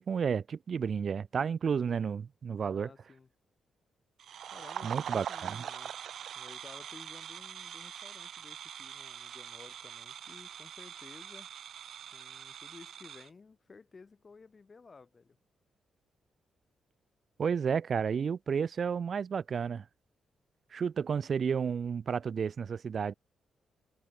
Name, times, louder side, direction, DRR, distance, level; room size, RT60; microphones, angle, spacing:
voice 1, 0.0-2.9 4.8-5.6 17.4-19.8 20.7-23.1, right 6 dB, 55° right, 1.6 m, -31 dB
voice 2, 2.6-3.3 4.5-5.9 6.3-11.5 12.1-15.4, left 4 dB, 40° left, 4.8 m, -54 dB
sound 1, 4.2-13.3, right 9 dB, 70° right, 0.6 m, -43 dB
cardioid pair, 70°, 0 cm